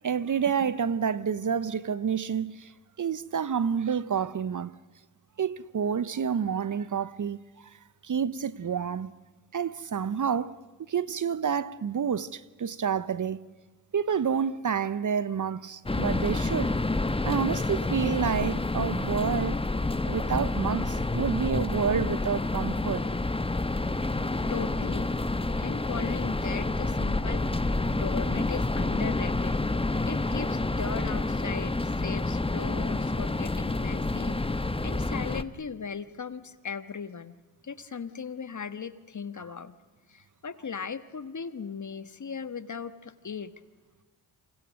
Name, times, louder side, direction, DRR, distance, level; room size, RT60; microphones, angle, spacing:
voice 1, 0.0-2.7 3.0-4.7 5.4-7.8 8.0-9.1 9.5-10.6 10.9-13.4 13.9-16.7 17.2-19.7 20.1-23.0, right 7 dB, 40° right, 0.9 m, -29 dB
sound 1, 15.9-35.4, left 2 dB, 10° left, 1.1 m, -28 dB
voice 2, 24.5-25.1 25.6-29.6 30.0-37.4 37.6-39.7 40.1-43.5, left 6 dB, 40° left, 1.4 m, -38 dB
27.5 x 25.5 x 6.4 m
supercardioid pair, 45°, 46 cm